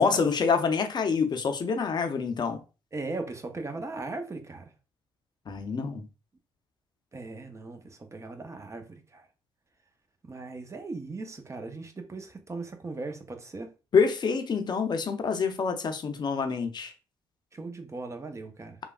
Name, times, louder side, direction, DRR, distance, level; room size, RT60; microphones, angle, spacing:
voice 1, 0.0-2.6 5.5-6.1 13.9-16.9, left 5 dB, 40° left, 0.6 m, -26 dB
voice 2, 2.9-4.7 7.1-9.3 10.2-13.7 17.5-18.8, right 3 dB, 25° right, 0.7 m, -38 dB
3.3 x 2.2 x 2.3 m
hypercardioid pair, 50°, 11 cm